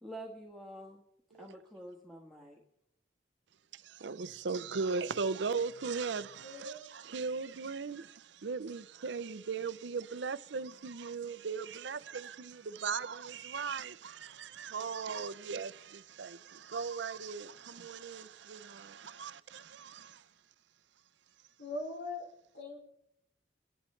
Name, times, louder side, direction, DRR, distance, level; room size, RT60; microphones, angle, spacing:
voice 1, 0.0-1.0 1.4-2.6, right 1 dB, ahead, 1.3 m, -47 dB
voice 2, 3.7-20.2, right 5 dB, 70° right, 0.6 m, -38 dB
voice 3, 6.4-6.8 21.6-22.2 22.5-22.8, left 2 dB, 80° left, 4.5 m, -41 dB
21.0 x 11.5 x 3.2 m
head